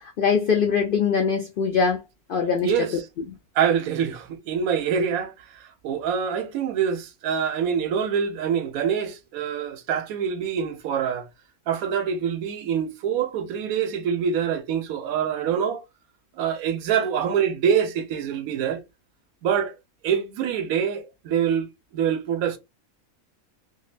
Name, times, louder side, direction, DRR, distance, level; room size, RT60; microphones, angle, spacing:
voice 1, 0.0-2.0 2.3-2.7, left 6 dB, 85° left, 0.4 m, -22 dB
voice 2, 2.6-3.1 3.6-11.3 11.7-15.8 16.4-18.8 19.4-19.7 20.0-22.6, right 7 dB, 85° right, 1.1 m, -25 dB
3.7 x 2.3 x 2.4 m
omnidirectional pair, 1.5 m